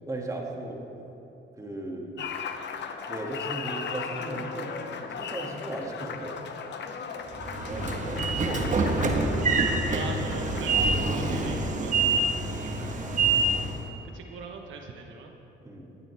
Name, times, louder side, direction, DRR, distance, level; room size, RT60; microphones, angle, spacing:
voice 1, 0.1-0.8 1.6-2.1 3.1-4.7 5.1-6.4 7.7-9.0 12.7-13.0 15.6-15.9, right 1 dB, 15° right, -1 dB, 2.3 m, -36 dB
Applause, 2.2-13.9, left 6 dB, 60° left, 0.9 m, -38 dB
Train / Sliding door, 7.3-13.8, right 3 dB, 40° right, 1.4 m, -26 dB
voice 2, 9.9-12.4 14.0-15.3, right 4 dB, 80° right, 2 dB, 1.2 m, -41 dB
18.5 x 12.0 x 3.5 m, 3.0 s
cardioid pair, 90°, 20 cm